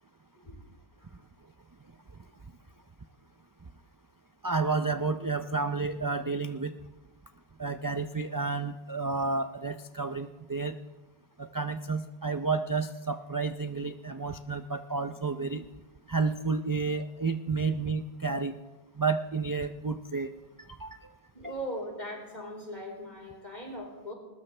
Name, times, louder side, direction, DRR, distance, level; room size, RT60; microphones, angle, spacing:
voice 1, 4.4-6.7 7.6-10.8 11.4-15.7 16.1-18.6 19.0-20.3 20.8-21.0 21.4-21.5, right 4 dB, 30° right, 8 dB, 0.4 m, -31 dB
voice 2, 21.3-24.1, equal, 45° left, -1 dB, 4.5 m, -40 dB
20.5 x 20.0 x 3.3 m, 1.1 s
omnidirectional pair, 1.1 m